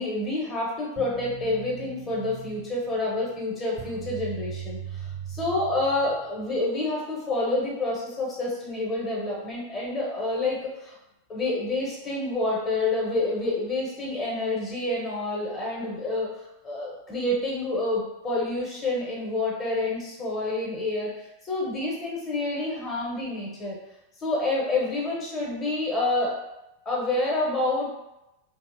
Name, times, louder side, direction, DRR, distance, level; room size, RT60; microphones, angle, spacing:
voice 1, 0.0-11.0 11.3-16.3 16.6-23.8 24.2-26.4 26.9-27.9, left 2 dB, 25° left, -4 dB, 0.7 m, -28 dB
sound 1, 1.0-6.6, right 9 dB, 30° right, 0.5 m, -40 dB
2.7 x 2.0 x 2.4 m, 0.90 s
figure-of-eight pair, 90°, 0 cm